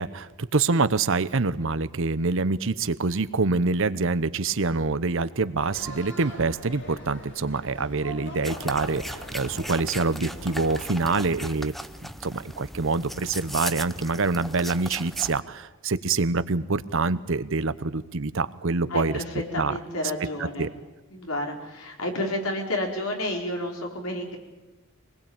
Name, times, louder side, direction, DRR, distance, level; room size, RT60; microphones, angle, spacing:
voice 1, 0.0-11.7 12.2-19.2 19.6-19.8 20.4-20.7, right 3 dB, 65° right, 14 dB, 0.9 m, -26 dB
sound 1, 5.6-10.9, equal, 60° left, 5.1 m, -42 dB
sound 2, 8.4-15.4, equal, ahead, 0.8 m, -37 dB
voice 2, 18.9-20.7 21.1-24.4, left 1 dB, 90° left, 1 dB, 4.5 m, -30 dB
25.0 x 20.0 x 8.8 m, 1.1 s
head